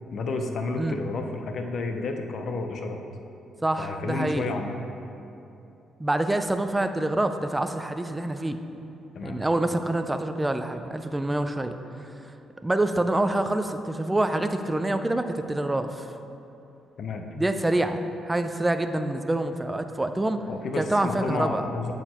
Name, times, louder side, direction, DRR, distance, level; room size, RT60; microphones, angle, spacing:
voice 1, 0.1-3.0 3.8-4.8 9.1-9.4 17.0-17.3 20.4-21.9, left 3 dB, 60° left, 5 dB, 0.6 m, -31 dB
voice 2, 3.6-4.5 6.0-8.6 9.2-11.7 12.6-16.1 17.4-20.4 20.8-21.6, right 1 dB, 15° right, 8 dB, 0.4 m, -26 dB
8.0 x 4.4 x 4.4 m, 2.9 s
cardioid pair, 90°, 0 cm